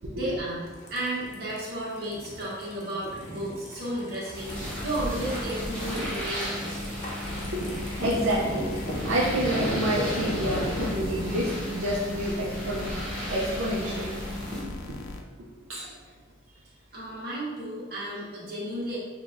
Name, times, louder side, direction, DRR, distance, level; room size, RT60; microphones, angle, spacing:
voice 1, 0.0-6.8 15.8-15.9 16.9-19.0, right 1 dB, 50° right, -8 dB, 1.3 m, -33 dB
sound 1, 0.7-11.5, equal, 35° left, 0.6 m, -36 dB
sound 2, 4.3-14.6, equal, 5° left, 0.9 m, -35 dB
sound 3, 7.2-15.2, left 2 dB, 80° left, 0.4 m, -39 dB
voice 2, 7.5-14.2 14.9-15.0 15.7-15.9, right 1 dB, 75° right, -5 dB, 0.5 m, -29 dB
5.6 x 2.2 x 2.5 m, 1.4 s
head